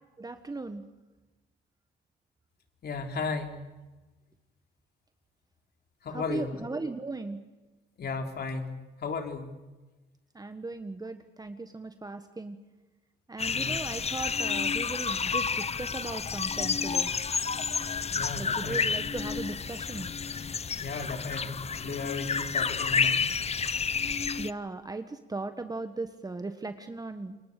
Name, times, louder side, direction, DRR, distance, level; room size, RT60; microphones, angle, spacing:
voice 1, 0.2-0.8 6.1-7.4 10.3-12.6 13.3-17.1 18.4-20.1 24.4-27.4, right 3 dB, 20° right, 8 dB, 1.4 m, -37 dB
voice 2, 2.8-3.6 6.0-6.6 8.0-9.5 13.5-13.8 18.1-18.8 20.8-23.2, left 4 dB, 55° left, 4 dB, 3.7 m, -35 dB
sound 1, 13.4-24.5, left 5 dB, 30° left, 0.8 m, -30 dB
28.5 x 22.5 x 6.7 m, 1.1 s
cardioid pair, 90°, 20 cm